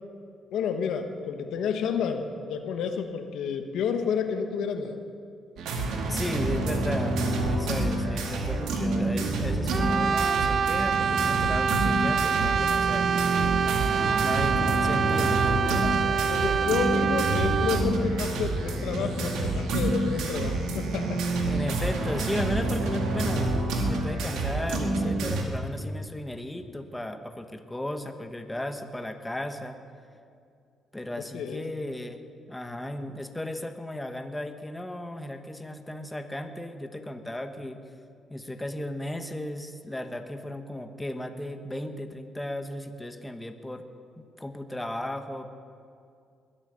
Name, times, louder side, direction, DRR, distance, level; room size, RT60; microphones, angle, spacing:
voice 1, 0.5-5.0 6.5-6.6 16.3-21.2 31.2-31.6, left 6 dB, 80° left, 7 dB, 1.2 m, -30 dB
sound 1, 5.6-25.4, right 2 dB, 85° right, 2.1 m, -28 dB
voice 2, 6.1-13.5 14.2-15.9 21.5-29.8 30.9-32.2 32.5-37.8 38.3-43.8 44.2-45.5, left 1 dB, 10° left, 6 dB, 1.1 m, -35 dB
Brass instrument, 9.7-17.9, right 7 dB, 50° right, 0.3 m, -26 dB
21.0 x 8.8 x 6.8 m, 2.4 s
cardioid pair, 90°, 0 cm